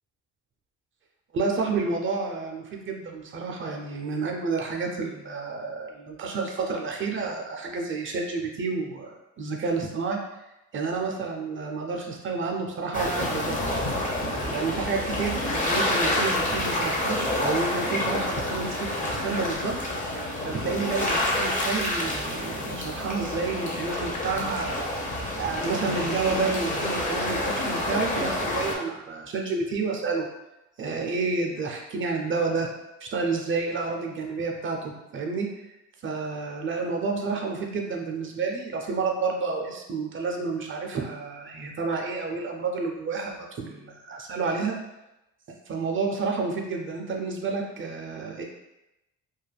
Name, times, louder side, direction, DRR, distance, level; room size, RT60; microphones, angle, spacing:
voice 1, 1.3-10.2 10.7-13.8 14.3-19.7 20.4-24.9 25.4-30.3 30.8-32.7 33.0-35.5 36.0-44.8 45.7-48.4, right 4 dB, 40° right, 1 dB, 0.5 m, -30 dB
sound 1, 12.9-28.8, left 1 dB, 25° left, 0.6 m, -28 dB
2.3 x 2.1 x 3.3 m, 0.94 s
cardioid pair, 90°, 30 cm